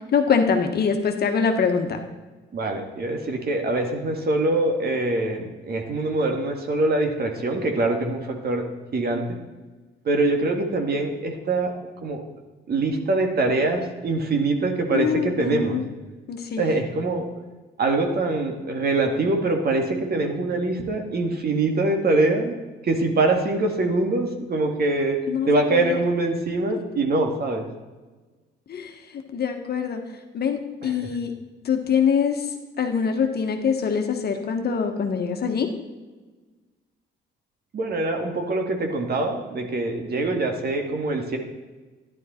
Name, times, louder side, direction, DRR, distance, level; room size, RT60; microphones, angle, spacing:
voice 1, 0.1-2.0 14.9-15.8 16.3-16.7 25.3-26.0 28.7-28.9 29.3-30.0 30.3-31.3 31.6-32.4 32.8-35.7, left 6 dB, 55° left, 5 dB, 1.4 m, -24 dB
voice 2, 2.5-9.4 10.0-11.8 12.0-12.2 12.7-15.8 16.6-17.3 17.8-22.6 22.8-27.7 30.8-31.2 37.7-41.4, right 2 dB, 50° right, 3 dB, 2.1 m, -24 dB
11.5 x 11.0 x 4.4 m, 1.3 s
cardioid pair, 90°, 20 cm